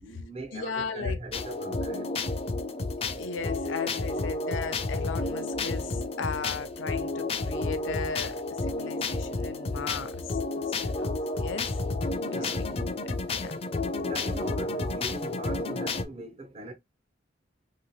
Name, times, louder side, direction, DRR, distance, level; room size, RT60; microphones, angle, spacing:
voice 1, 0.0-2.2 12.3-12.6 14.0-16.7, right 1 dB, 30° right, 0.5 m, -40 dB
voice 2, 0.5-1.2 3.2-12.0 12.3-13.6, left 5 dB, 85° left, 0.5 m, -37 dB
sound 1, 1.3-16.0, left 3 dB, 30° left, 0.4 m, -31 dB
2.9 x 2.7 x 2.9 m
head